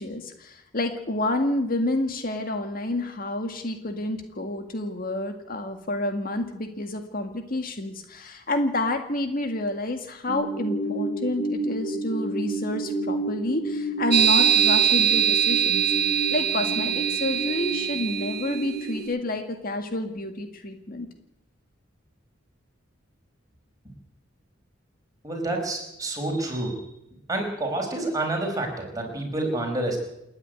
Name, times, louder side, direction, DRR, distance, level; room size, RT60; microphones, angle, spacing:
voice 1, 0.0-21.1, left 1 dB, 45° left, 6 dB, 1.9 m, -29 dB
sound 1, 10.3-19.0, right 2 dB, 25° left, 5.9 m, -31 dB
sound 2, 14.1-18.8, right 9 dB, 55° right, 1.1 m, -22 dB
voice 2, 25.2-26.8 27.3-30.0, right 2 dB, 20° right, 1 dB, 5.4 m, -28 dB
29.0 x 9.9 x 9.6 m, 0.86 s
head